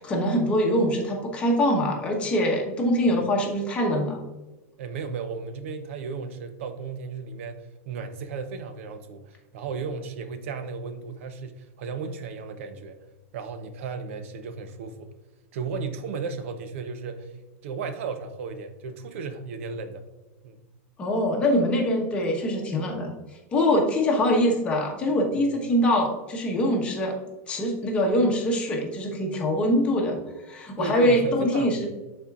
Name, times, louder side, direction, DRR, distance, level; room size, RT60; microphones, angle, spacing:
voice 1, 0.0-4.2 21.0-23.1 23.5-27.1 27.5-30.2 30.5-31.9, equal, 15° left, 0 dB, 1.1 m, -23 dB
voice 2, 4.8-13.0 13.3-15.1 15.5-17.3 17.6-20.0 20.4-20.6 25.3-25.4 30.8-31.9, right 5 dB, 60° right, 9 dB, 0.8 m, -35 dB
12.5 x 4.3 x 2.4 m, 1.1 s
supercardioid pair, 175°, 8 cm